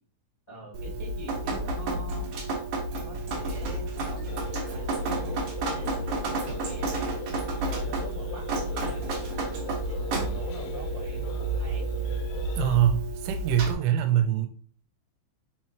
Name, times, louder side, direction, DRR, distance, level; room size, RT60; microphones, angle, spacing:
voice 1, 0.5-2.3 3.0-7.2 7.7-9.2 9.8-11.9, equal, 50° left, -4 dB, 0.5 m, -44 dB
Drip, 0.7-13.7, right 2 dB, 70° right, 1.9 m, -31 dB
sound 1, 4.3-12.8, left 4 dB, 85° left, 3.1 m, -42 dB
voice 2, 12.6-14.5, right 11 dB, 85° right, 6 dB, 3.1 m, -24 dB
7.1 x 4.6 x 2.9 m, 0.44 s
omnidirectional pair, 5.7 m